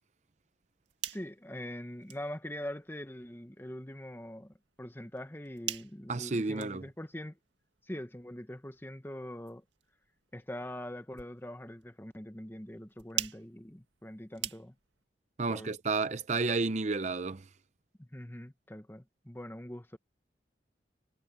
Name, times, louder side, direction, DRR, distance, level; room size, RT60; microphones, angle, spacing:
sound 1, 0.6-15.0, right 12 dB, 75° right, 1.8 m, -46 dB
voice 1, 1.1-7.4 7.8-9.6 10.3-14.8 15.5-15.7 18.0-20.0, left 1 dB, 10° left, 1.0 m, -43 dB
voice 2, 6.1-6.8 15.4-17.4, right 3 dB, 40° right, 0.6 m, -31 dB
head